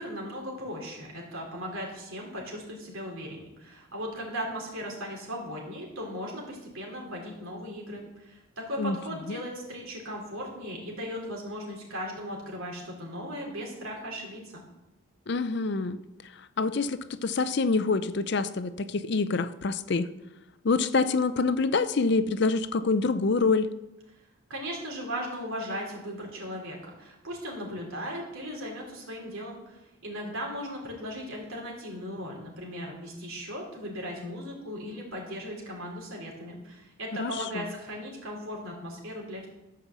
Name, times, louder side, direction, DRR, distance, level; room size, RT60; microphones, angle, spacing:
voice 1, 0.0-14.6 24.5-39.5, equal, 75° right, -1 dB, 3.4 m, -37 dB
voice 2, 15.3-16.0 16.6-20.1 20.6-23.7 37.2-37.6, left 4 dB, 55° left, 13 dB, 0.5 m, -26 dB
12.5 x 5.5 x 7.3 m, 0.97 s
head